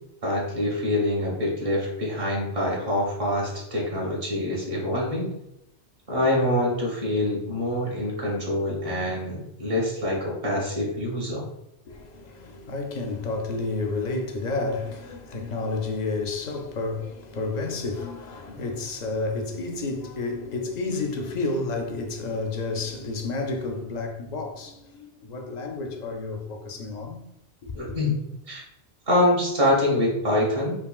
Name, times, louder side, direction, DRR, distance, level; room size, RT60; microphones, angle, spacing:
voice 1, 0.2-5.3 6.1-11.4 27.7-28.2 28.5-28.6 29.1-30.8, left 1 dB, 55° right, 1.5 m, -25 dB
voice 2, 11.9-27.3 27.6-27.7, left 3 dB, 55° left, 0.5 m, -30 dB
5.0 x 2.7 x 2.3 m
omnidirectional pair, 1.1 m